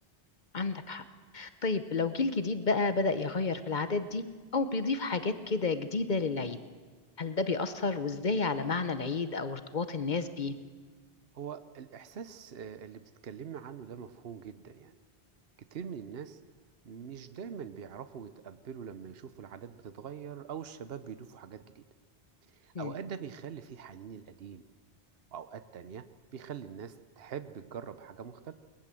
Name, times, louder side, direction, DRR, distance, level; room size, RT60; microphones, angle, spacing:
voice 1, 0.5-1.0 1.3-4.2 4.5-6.6 7.2-10.6 22.7-22.9, left 3 dB, 50° left, 11 dB, 1.0 m, -31 dB
voice 2, 11.3-14.9 15.6-16.4 16.8-21.9 22.5-24.6 25.3-26.1 26.3-28.5, right 7 dB, 70° right, 12 dB, 1.1 m, -43 dB
21.5 x 19.0 x 7.6 m, 1.5 s
omnidirectional pair, 1.0 m